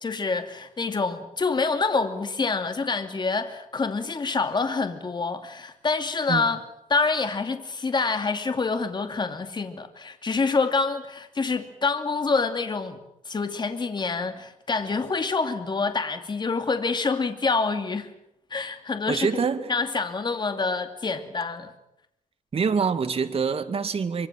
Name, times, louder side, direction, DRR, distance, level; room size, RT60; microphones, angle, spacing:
voice 1, 0.0-6.6 6.9-18.1 18.5-19.3 19.7-21.7, left 4 dB, 35° left, 2.7 m, -26 dB
voice 2, 19.1-19.7 22.5-24.3, right 5 dB, 45° right, 2.3 m, -25 dB
24.5 x 24.5 x 7.7 m
cardioid pair, 100°, 13 cm